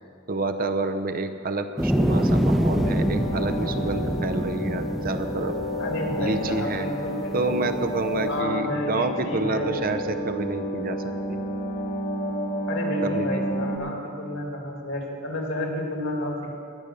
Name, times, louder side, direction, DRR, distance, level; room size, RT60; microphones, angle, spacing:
voice 1, 0.3-5.5 6.2-6.9 7.3-11.4 13.0-13.4, right 3 dB, 45° right, 8 dB, 0.7 m, -28 dB
sound 1, 1.8-8.4, equal, ahead, 0.7 m, -26 dB
sound 2, 2.8-13.8, equal, 40° left, 1.2 m, -31 dB
voice 2, 5.8-9.8 12.7-16.5, left 1 dB, 65° left, 0 dB, 2.3 m, -31 dB
17.5 x 6.9 x 6.5 m, 2.3 s
head